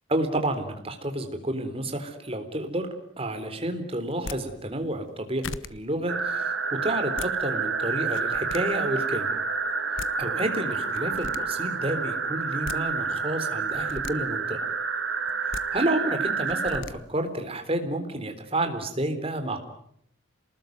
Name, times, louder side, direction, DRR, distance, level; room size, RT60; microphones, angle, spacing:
voice 1, 0.1-2.9 3.2-9.3 10.2-14.6 15.7-19.6, right 1 dB, 30° right, 6 dB, 3.7 m, -30 dB
sound 1, 4.1-4.4 5.1-5.2 5.4-5.7 6.9-7.3 8.0-8.6 9.7-9.8 10.0-10.1 10.9-11.4 12.4-12.8 13.7-14.1 15.3-15.6 16.5-16.9, left 4 dB, 70° left, 1.1 m, -37 dB
sound 2, 6.1-16.8, right 5 dB, 65° right, 2.3 m, -29 dB
28.5 x 20.0 x 9.4 m, 0.72 s
head